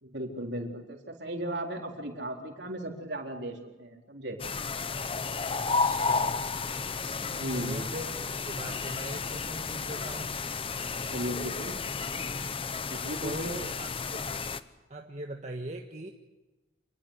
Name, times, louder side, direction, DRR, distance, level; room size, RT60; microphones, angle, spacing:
voice 1, 0.0-4.4 7.2-7.9 10.9-11.8 12.9-13.5, right 1 dB, 60° right, 2 dB, 4.1 m, -36 dB
sound 1, 4.4-14.6, left 4 dB, 30° left, 0.9 m, -32 dB
voice 2, 5.5-6.5 7.5-10.3 13.2-14.2 14.9-16.1, right 1 dB, 35° right, 2 dB, 1.6 m, -40 dB
27.5 x 20.5 x 8.3 m, 1.1 s
head